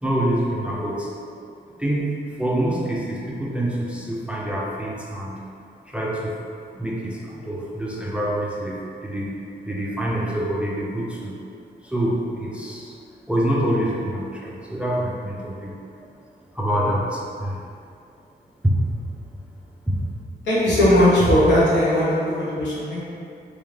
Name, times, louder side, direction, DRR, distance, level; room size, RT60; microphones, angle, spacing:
voice 1, 0.0-1.1 1.8-5.3 5.9-6.4 6.7-9.4 9.6-11.3 11.8-13.0 13.3-16.1 16.5-17.6 18.6-18.8 19.9-20.0, right 1 dB, 5° right, -4 dB, 0.3 m, -26 dB
voice 2, 20.4-23.0, equal, 80° left, -9 dB, 1.2 m, -18 dB
3.4 x 2.7 x 3.2 m, 2.4 s
wide cardioid pair, 150°, 18 cm